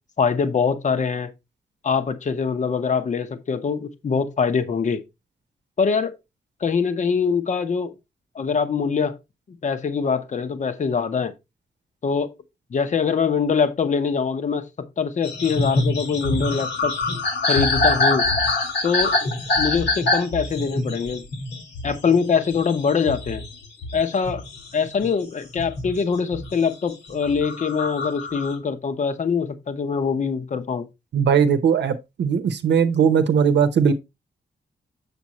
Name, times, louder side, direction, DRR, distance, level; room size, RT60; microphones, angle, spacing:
voice 1, 0.2-1.3 1.8-5.0 5.8-6.2 6.6-7.9 8.3-9.2 9.5-11.3 12.0-12.3 12.7-14.7 15.0-16.9 17.5-18.3 18.8-21.2 21.8-23.4 23.9-24.4 24.7-30.9, left 5 dB, 45° left, 0.9 m, -23 dB
sound 1, 15.2-25.1 25.6-26.6 27.1-28.5, left 2 dB, 70° left, 1.9 m, -25 dB
voice 2, 31.1-33.9, right 7 dB, 80° right, 0.8 m, -19 dB
7.3 x 6.9 x 3.0 m
wide cardioid pair, 180°, 18 cm